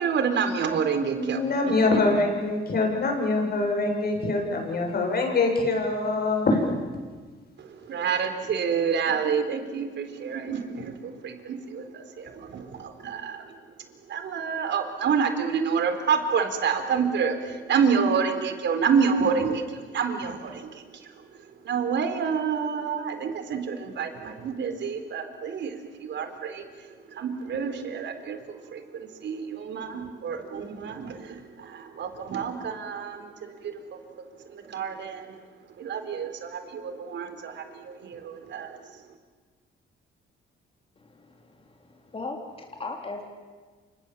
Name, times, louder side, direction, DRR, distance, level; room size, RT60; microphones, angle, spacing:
voice 1, 0.0-1.4 7.6-13.5 14.1-21.1 21.6-35.4 35.8-38.8, right 6 dB, 65° right, 7 dB, 4.0 m, -28 dB
voice 2, 1.2-6.8, left 2 dB, 50° left, 2 dB, 7.7 m, -24 dB
voice 3, 41.0-43.2, left 3 dB, 30° left, 2 dB, 3.8 m, -38 dB
29.0 x 27.0 x 7.6 m, 1.4 s
cardioid pair, 90°, 20 cm